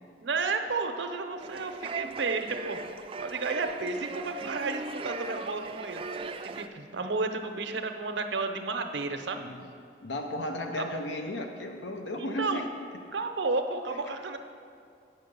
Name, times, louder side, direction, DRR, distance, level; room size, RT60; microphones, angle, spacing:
voice 1, 0.2-2.8 3.2-6.0 6.6-9.4 10.8-10.9 12.4-12.6 13.1-14.4, right 3 dB, 90° right, 6 dB, 0.7 m, -32 dB
sound 1, 1.4-6.7, right 4 dB, 30° right, 0.3 m, -38 dB
voice 2, 1.5-2.1 9.4-9.7 10.0-12.9, left 1 dB, 85° left, 4 dB, 0.6 m, -35 dB
8.2 x 5.6 x 6.7 m, 2.4 s
head